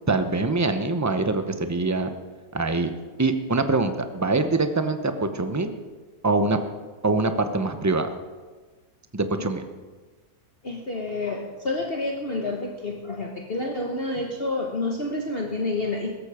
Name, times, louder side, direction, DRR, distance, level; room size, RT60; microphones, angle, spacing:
voice 1, 0.1-2.1 2.5-2.9 3.2-5.8 6.2-6.6 7.0-8.1 9.1-9.6, right 3 dB, 15° right, 8 dB, 0.6 m, -24 dB
voice 2, 10.6-16.1, left 2 dB, 40° left, 0 dB, 1.3 m, -29 dB
17.5 x 14.0 x 5.0 m, 1.3 s
omnidirectional pair, 1.7 m